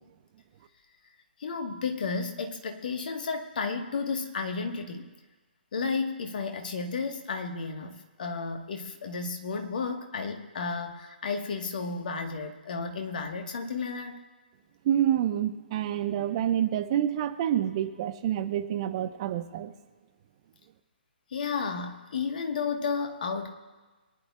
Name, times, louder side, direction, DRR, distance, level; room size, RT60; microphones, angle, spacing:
voice 1, 1.4-5.1 5.7-14.2 21.3-23.5, left 4 dB, 50° left, 5 dB, 1.4 m, -32 dB
voice 2, 14.8-19.7, right 10 dB, 35° right, 10 dB, 0.8 m, -27 dB
23.0 x 10.0 x 2.4 m, 1.3 s
figure-of-eight pair, 135°, 6 cm